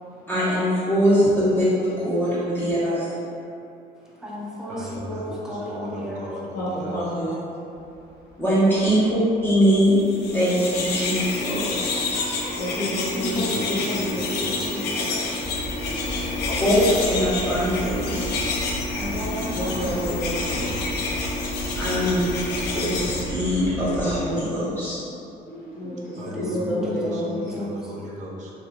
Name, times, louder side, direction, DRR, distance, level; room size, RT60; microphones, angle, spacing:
voice 1, 0.3-3.1 8.4-10.0 10.3-11.8 16.6-18.4 21.7-22.2 22.7-25.0, equal, 10° left, -12 dB, 1.2 m, -22 dB
voice 2, 4.2-6.3 12.9-15.3 18.9-20.3 20.5-20.7 26.2-27.9, left 1 dB, 5° right, -6 dB, 0.5 m, -33 dB
voice 3, 4.7-7.0 13.3-15.4 19.7-21.3 26.1-28.5, equal, 45° right, -2 dB, 0.5 m, -38 dB
voice 4, 6.5-7.6 8.3-8.4 11.5-11.6 11.9-15.0 15.8-16.6 19.5-20.4 21.4-22.0 25.4-27.2, equal, 60° left, -13 dB, 0.9 m, -31 dB
sound 1, 7.8-24.3, equal, 30° right, 1.0 m, -36 dB
sound 2, 10.0-23.2, left 3 dB, 75° left, 0.5 m, -28 dB
2.9 x 2.5 x 2.3 m, 2.7 s
cardioid pair, 110°, 17 cm